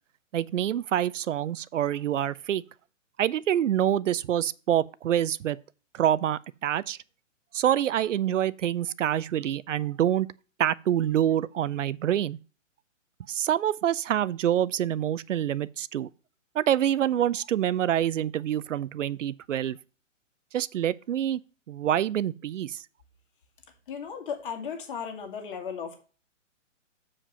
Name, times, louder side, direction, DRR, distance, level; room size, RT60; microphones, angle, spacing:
voice 1, 0.3-2.6 3.2-5.6 5.9-7.0 7.5-10.3 10.6-12.4 13.3-16.1 16.5-19.8 20.5-21.4 21.7-22.8, right 11 dB, 70° right, 0.5 m, -26 dB
voice 2, 23.9-26.0, left 6 dB, 40° left, 2.1 m, -35 dB
7.3 x 5.1 x 5.7 m
hypercardioid pair, 150°, 39 cm